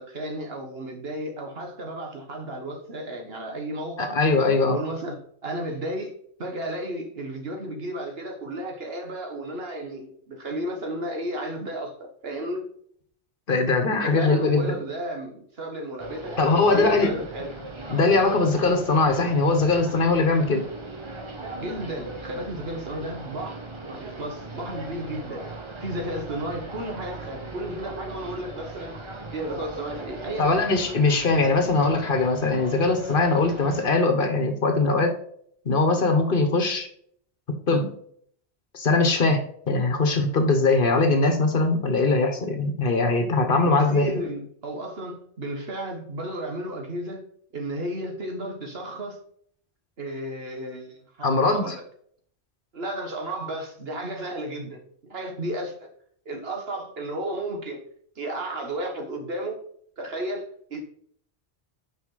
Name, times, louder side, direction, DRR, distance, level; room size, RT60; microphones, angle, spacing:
voice 1, 0.0-4.2 4.7-12.7 13.9-17.6 21.6-23.6 23.9-25.5 25.8-29.0 29.3-30.6 43.6-47.3 47.5-49.2 50.0-51.8 52.7-55.9 56.3-57.8 58.2-59.6 60.0-60.8, right 1 dB, 70° right, 1.7 m, -33 dB
voice 2, 4.0-4.8 13.5-14.8 16.4-17.1 17.9-20.7 30.4-35.2 35.6-36.9 37.7-37.9 38.7-44.2 51.2-51.7, left 3 dB, 55° left, 1.3 m, -21 dB
sound 1, 16.0-33.8, right 2 dB, 30° right, 0.9 m, -38 dB
6.1 x 5.4 x 3.9 m
omnidirectional pair, 1.1 m